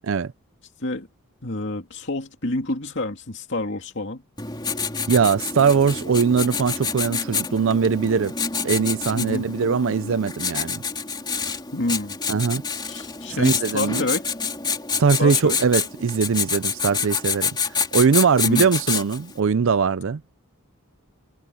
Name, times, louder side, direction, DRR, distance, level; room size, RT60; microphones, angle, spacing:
voice 1, 1.4-4.2 9.2-9.4 11.7-12.2 12.9-14.3 15.2-15.6 18.5-18.7, left 2 dB, 55° left, 2.6 m, -28 dB
Writing, 4.4-19.3, left 5 dB, 20° left, 3.5 m, -27 dB
voice 2, 5.1-8.3 8.6-10.8 12.3-12.6 13.3-14.0 15.0-20.2, right 5 dB, 60° right, 0.4 m, -21 dB
head